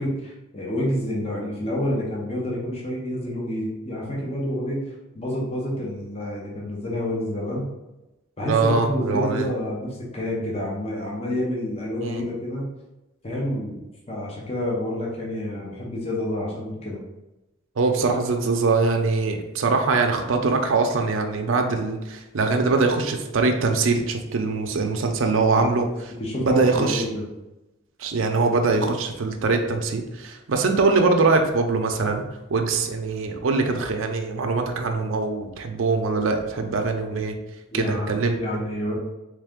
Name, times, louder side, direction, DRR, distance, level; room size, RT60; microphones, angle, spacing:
voice 1, 0.0-4.8 5.1-7.7 8.4-12.7 13.2-13.8 14.1-17.0 25.5-25.7 26.2-27.3 37.7-38.9, left 1 dB, 30° left, -4 dB, 0.8 m, -28 dB
voice 2, 8.4-9.5 12.0-12.2 17.8-25.9 26.4-27.0 28.0-37.3 37.7-38.4, right 3 dB, 80° right, 4 dB, 0.5 m, -22 dB
3.3 x 3.3 x 3.6 m, 1.0 s
head